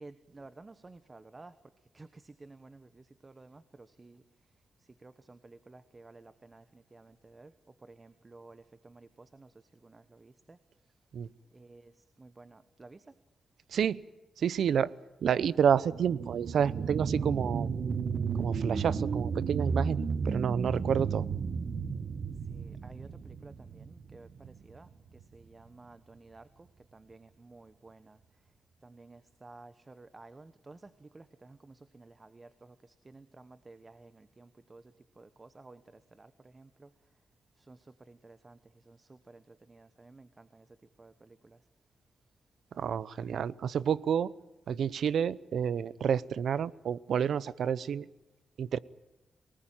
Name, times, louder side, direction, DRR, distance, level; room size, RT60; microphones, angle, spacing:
voice 1, 0.0-1.5 1.9-2.1 2.4-2.8 3.2-3.6 4.0-4.2 5.0-6.6 6.9-7.5 8.0-8.6 8.9-9.0 9.4-9.5 10.2-10.3 11.6-11.8 12.2-13.0 22.5-23.5 23.9-24.3 24.7-24.9 25.3-26.4 26.9-28.0 28.8-30.8 31.1-31.2 31.9-32.5 33.1-34.1 34.4-34.8 35.2-35.8 36.2-36.3 36.5-36.6 37.7-37.8 38.1-38.5 39.7-40.3 41.0-41.1, right 3 dB, 25° right, 13 dB, 1.1 m, -52 dB
voice 2, 14.4-14.9 15.2-17.7 18.4-21.2 42.8-44.3 44.7-48.0 48.6-48.8, right 8 dB, 75° right, 20 dB, 0.7 m, -29 dB
sound 1, 15.8-24.8 25.2-25.3, right 5 dB, 55° right, 1.3 m, -33 dB
23.5 x 19.5 x 8.9 m, 1.0 s
cardioid pair, 100°, 0 cm